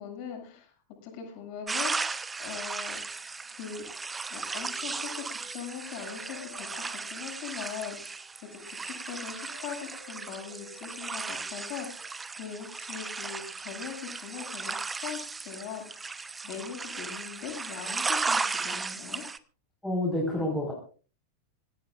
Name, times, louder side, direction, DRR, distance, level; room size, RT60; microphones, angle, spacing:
voice 1, 0.0-3.2 3.5-3.8 4.3-19.2, left 8 dB, 45° left, 2 dB, 7.6 m, -41 dB
sound 1, 1.7-19.4, right 4 dB, 15° right, 1.0 m, -35 dB
Wind instrument woodwind instrument, 4.4-7.8 8.1-11.7, left 2 dB, 80° left, 7.5 m, -52 dB
voice 2, 19.8-20.7, left 1 dB, 5° left, -3 dB, 5.2 m, -28 dB
25.5 x 17.0 x 2.6 m, 0.40 s
figure-of-eight pair, 90°, 0 cm